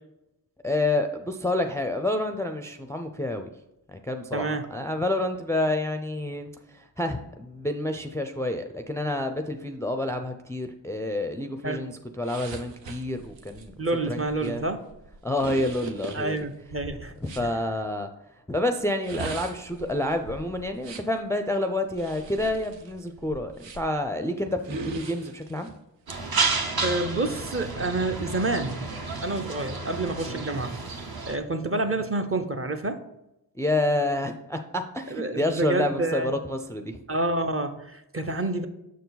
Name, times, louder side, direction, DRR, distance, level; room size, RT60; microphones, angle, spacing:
voice 1, 0.6-3.5 3.9-13.7 14.1-14.6 15.2-16.5 17.2-18.1 18.5-25.7 30.3-30.4 33.5-37.0, left 1 dB, 5° left, 6 dB, 0.4 m, -28 dB
voice 2, 4.3-4.7 11.6-11.8 13.8-14.8 16.1-17.1 17.4-17.5 26.8-28.9 29.2-30.8 31.3-33.0 35.1-36.3 37.1-38.7, right 2 dB, 30° right, 6 dB, 0.7 m, -28 dB
sound 1, 12.2-17.5 18.9-21.2 21.9-24.0 24.6-25.7 26.3-26.5, right 4 dB, 80° right, 0.8 m, -40 dB
sound 2, 26.1-31.4, right 4 dB, 55° right, 1.0 m, -31 dB
6.5 x 4.6 x 4.0 m, 0.90 s
cardioid pair, 55°, 44 cm